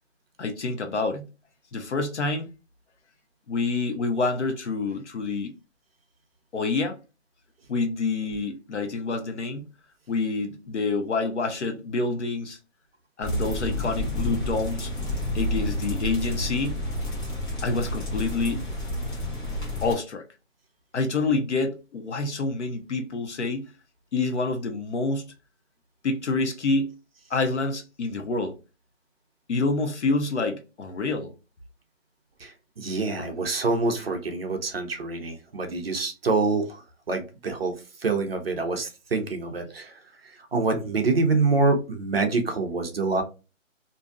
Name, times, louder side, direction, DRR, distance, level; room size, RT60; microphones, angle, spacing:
voice 1, 0.4-1.2 1.7-2.5 3.5-5.5 6.5-7.0 7.7-9.6 10.1-12.6 13.2-14.9 15.3-16.8 17.6-18.7 19.8-20.2 20.9-23.6 24.1-25.3 26.0-26.9 27.3-28.6 29.5-31.3 33.2-33.3, left 3 dB, 60° left, 0.7 m, -27 dB
sound 1, 13.2-19.9, left 1 dB, 40° left, 1.0 m, -30 dB
voice 2, 32.4-36.8 37.1-43.2, right 3 dB, 50° right, 0.6 m, -26 dB
2.5 x 2.3 x 2.4 m
hypercardioid pair, 170°, 39 cm